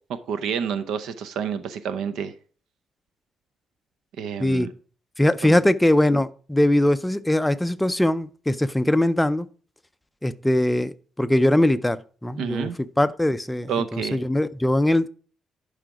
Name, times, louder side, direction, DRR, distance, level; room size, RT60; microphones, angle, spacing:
voice 1, 0.3-2.3 4.2-4.7 5.4-5.6 12.4-12.8 13.7-14.2, right 7 dB, 75° right, 0.7 m, -29 dB
voice 2, 5.2-9.5 10.2-12.7 13.0-15.1, left 1 dB, 5° left, 0.4 m, -21 dB
11.5 x 5.0 x 4.8 m
cardioid pair, 160°, 0 cm